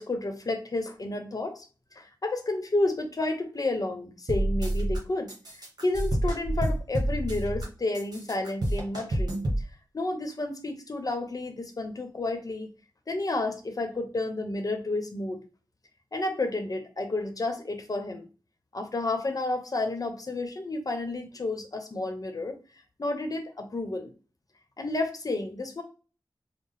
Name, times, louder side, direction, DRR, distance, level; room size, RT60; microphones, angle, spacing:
voice 1, 0.0-1.6 2.0-5.3 5.8-9.4 9.9-12.7 13.1-15.4 16.1-18.3 18.7-22.6 23.0-24.1 24.8-25.8, left 2 dB, 50° left, 6 dB, 0.8 m, -31 dB
sound 1, 4.3-5.0 5.3-7.7 7.9-9.6, right 1 dB, 55° right, 1.3 m, -28 dB
4.6 x 2.0 x 3.4 m, 0.35 s
wide cardioid pair, 90°, 8 cm